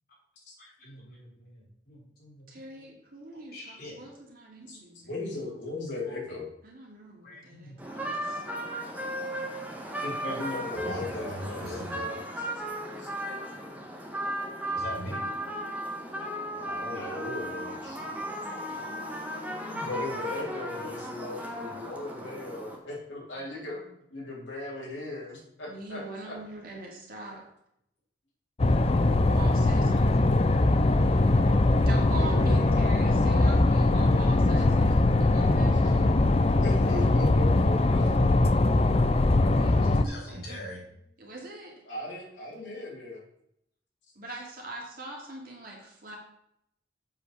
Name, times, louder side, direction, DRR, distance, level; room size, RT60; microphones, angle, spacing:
voice 1, 0.6-2.5 3.5-4.0 7.2-8.3 10.7-12.0 14.7-15.3 18.2-18.3 39.8-40.8, equal, 55° left, -4 dB, 3.6 m, -42 dB
voice 2, 2.5-5.1 6.6-8.4 25.7-27.4 29.2-30.3 31.8-36.5 39.5-40.7 41.2-41.7 44.1-46.2, right 2 dB, 50° right, -2 dB, 2.5 m, -43 dB
voice 3, 5.0-6.5 10.0-12.5 13.0-13.1 16.3-18.0 18.4-18.5 19.4-23.8 24.1-26.3 32.1-33.1 35.3-35.4 36.6-38.3 41.9-43.2, left 2 dB, 80° left, -3 dB, 3.3 m, -38 dB
sound 1, 7.8-22.8, right 1 dB, 10° right, 1.4 m, -35 dB
sound 2, 28.6-40.0, left 2 dB, 35° left, 0.5 m, -22 dB
7.5 x 5.2 x 6.6 m, 0.76 s
head